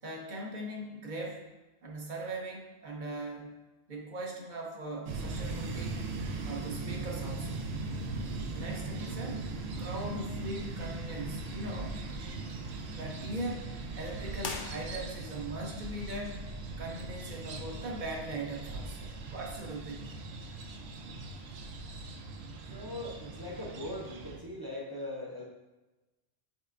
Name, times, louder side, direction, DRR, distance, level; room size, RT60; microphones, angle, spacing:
voice 1, 0.0-1.4 1.8-3.5 3.9-6.0 6.4-7.7 8.0-8.1 8.5-9.4 9.8-11.9 12.9-16.4 16.8-20.3, right 1 dB, 50° right, 0 dB, 0.8 m, -40 dB
sound 1, 5.0-24.4, right 3 dB, 90° right, 0.8 m, -39 dB
sound 2, 14.4-15.4, left 5 dB, 60° left, 0.6 m, -41 dB
voice 2, 22.6-25.4, left 1 dB, 30° right, -3 dB, 0.5 m, -40 dB
5.7 x 3.2 x 2.5 m, 1.1 s
omnidirectional pair, 1.0 m